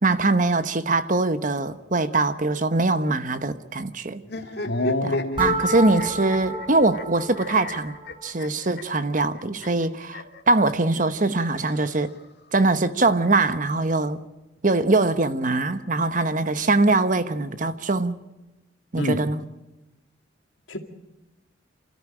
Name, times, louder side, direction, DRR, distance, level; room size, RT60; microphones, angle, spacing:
voice 1, 0.0-4.2 5.0-7.9 8.2-12.1 12.5-14.2 14.6-18.2 18.9-19.4, right 2 dB, 45° right, 1.0 m, -22 dB
sound 1, 4.2-10.4 11.4-12.5, left 2 dB, 55° left, 1.9 m, -35 dB
voice 2, 4.7-5.6 19.0-19.2 20.7-20.8, left 1 dB, 90° left, 2.3 m, -26 dB
sound 2, 5.4-8.3, right 1 dB, 25° right, 4.2 m, -30 dB
29.0 x 13.5 x 8.8 m
head